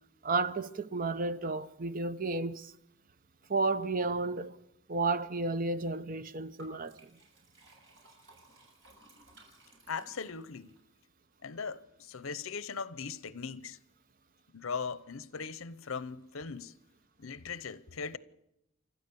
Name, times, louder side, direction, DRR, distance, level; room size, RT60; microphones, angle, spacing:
voice 1, 0.2-2.7 3.5-4.5 4.9-7.0, right 3 dB, 40° right, 0.7 m, -32 dB
Liquid, 6.6-10.8, right 1 dB, 60° right, 7.2 m, -58 dB
voice 2, 9.9-10.7 11.4-13.8 14.5-16.8 17.2-18.2, left 5 dB, 85° left, 0.8 m, -39 dB
29.5 x 13.0 x 7.0 m
head